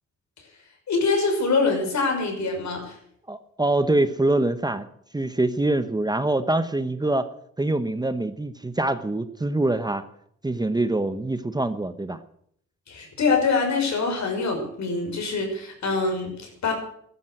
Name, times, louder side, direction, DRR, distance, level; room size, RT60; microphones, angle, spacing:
voice 1, 0.9-2.9 12.9-16.7, left 4 dB, 65° left, 3 dB, 6.2 m, -24 dB
voice 2, 3.3-4.9 5.1-7.3 7.6-10.0 10.4-12.2, right 2 dB, 15° right, 11 dB, 1.0 m, -24 dB
14.5 x 12.5 x 7.9 m, 0.67 s
cardioid pair, 100°, 30 cm